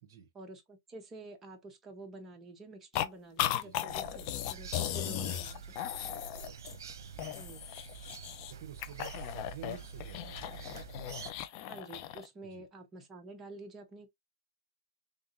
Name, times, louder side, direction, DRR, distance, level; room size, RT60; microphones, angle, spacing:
voice 1, 0.3-5.7 7.3-7.7 11.7-14.1, right 2 dB, 15° right, 1.1 m, -49 dB
sound 1, 2.9-3.1 3.4-6.9 7.2-8.5 8.8-12.3, left 12 dB, 40° left, 0.5 m, -37 dB
voice 2, 3.5-3.9 5.9-6.6 7.0-7.3 8.5-10.7 12.4-12.7, right 9 dB, 45° right, 1.1 m, -51 dB
sound 2, 3.9-11.3, right 5 dB, 75° right, 0.8 m, -47 dB
3.7 x 3.5 x 2.7 m
hypercardioid pair, 135°, 2 cm